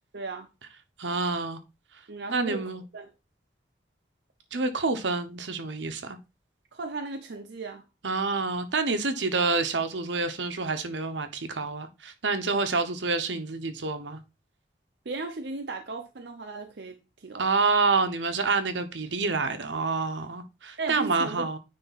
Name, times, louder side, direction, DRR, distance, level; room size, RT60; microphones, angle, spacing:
voice 1, 0.1-0.5 2.1-3.1 6.7-7.8 15.0-17.5 20.8-21.5, right 3 dB, 70° right, 0.7 m, -36 dB
voice 2, 1.0-1.6 2.3-2.8 4.5-6.2 8.0-14.2 17.4-21.6, right 3 dB, 90° right, 1.0 m, -28 dB
9.7 x 3.5 x 4.1 m
head